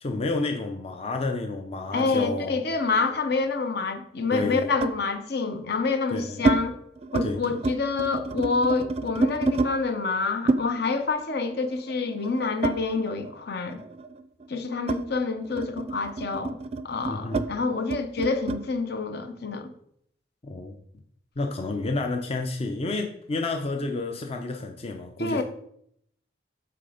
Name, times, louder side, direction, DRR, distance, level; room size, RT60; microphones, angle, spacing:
voice 1, 0.0-2.6 4.3-4.7 6.1-6.5 7.2-7.6 17.1-17.5 20.4-20.8 21.4-25.4, left 3 dB, 35° left, 4 dB, 0.6 m, -30 dB
voice 2, 1.9-6.8 7.1-13.8 14.5-16.6 16.8-19.7 25.2-25.4, left 4 dB, 60° left, 7 dB, 0.8 m, -27 dB
sound 1, 1.9-3.5 4.8-5.1 5.8-6.6 7.0-7.3 7.6-9.7 10.5-13.4 13.7-18.6, right 3 dB, 35° right, 0.4 m, -29 dB
8.0 x 3.4 x 5.0 m, 0.71 s
head